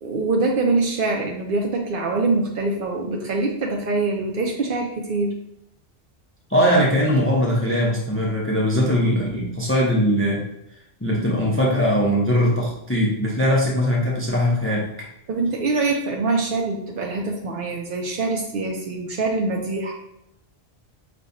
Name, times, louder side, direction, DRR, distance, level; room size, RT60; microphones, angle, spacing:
voice 1, 0.0-5.3 15.3-19.9, right 3 dB, 60° right, 0 dB, 0.7 m, -24 dB
voice 2, 6.5-10.5 11.0-14.9, equal, 15° left, -3 dB, 0.5 m, -20 dB
5.1 x 2.3 x 2.6 m, 0.79 s
omnidirectional pair, 1.1 m